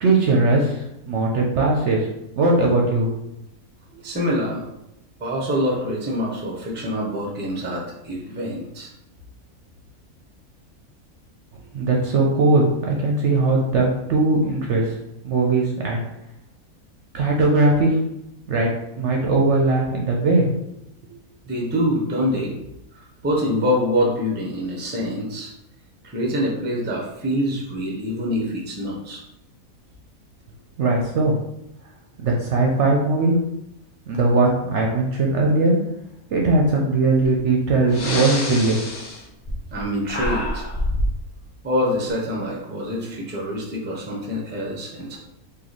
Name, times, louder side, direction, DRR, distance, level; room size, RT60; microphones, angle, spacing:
voice 1, 0.0-2.1 2.4-3.1 11.5-15.0 15.2-16.0 17.1-18.0 18.5-18.7 19.0-20.5 21.0-21.1 30.8-31.4 32.2-33.4 34.1-35.8 36.3-38.8, right 2 dB, 60° right, -1 dB, 0.8 m, -19 dB
voice 2, 4.0-4.6 5.2-8.9 21.5-22.5 22.9-25.5 26.1-29.2 39.7-40.6 41.6-45.2, equal, 10° right, -3 dB, 0.5 m, -25 dB
Breathing, 37.3-37.4 37.8-39.8 40.1-41.2, left 1 dB, 45° left, 0.7 m, -26 dB
3.1 x 2.7 x 4.0 m, 0.84 s
omnidirectional pair, 1.5 m